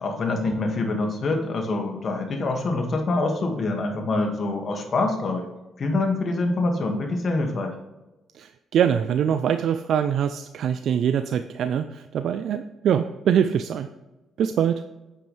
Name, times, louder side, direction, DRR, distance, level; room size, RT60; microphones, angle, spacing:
voice 1, 0.0-5.5 5.8-7.8, left 2 dB, 50° left, 3 dB, 2.0 m, -25 dB
voice 2, 8.3-13.9 14.4-14.8, right 8 dB, 70° right, 9 dB, 0.4 m, -23 dB
9.6 x 7.6 x 3.3 m, 1.0 s
cardioid pair, 90°, 0 cm